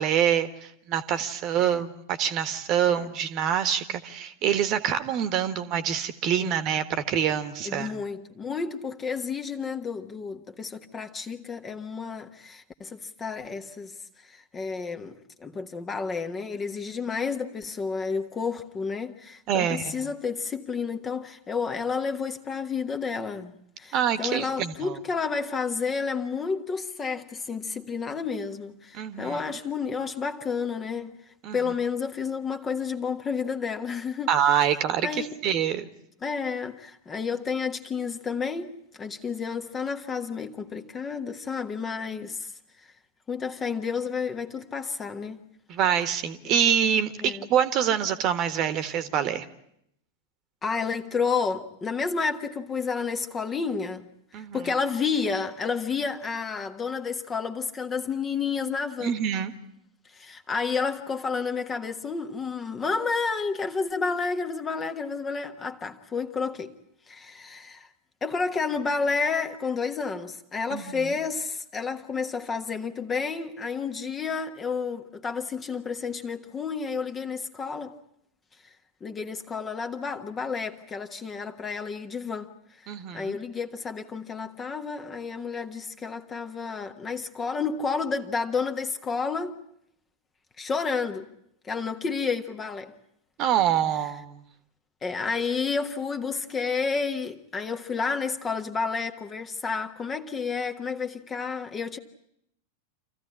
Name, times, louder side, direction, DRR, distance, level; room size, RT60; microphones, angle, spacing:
voice 1, 0.0-7.9 19.5-20.1 23.9-25.0 28.9-29.4 31.4-31.6 34.3-35.9 45.7-49.4 54.3-54.7 59.0-59.5 70.7-71.1 82.9-83.4 93.4-94.4, right 9 dB, 40° right, 1.6 m, -26 dB
voice 2, 7.6-23.5 23.8-31.2 31.5-34.3 35.0-35.3 36.2-42.5 43.3-45.4 46.5-46.6 47.2-47.5 50.6-54.0 54.5-59.1 60.1-66.7 67.1-67.9 68.2-77.9 79.0-82.5 83.1-89.6 90.6-91.3 91.6-92.9 95.0-102.0, left 5 dB, 20° left, 1.5 m, -30 dB
27.5 x 15.0 x 9.8 m
figure-of-eight pair, 90°, 0 cm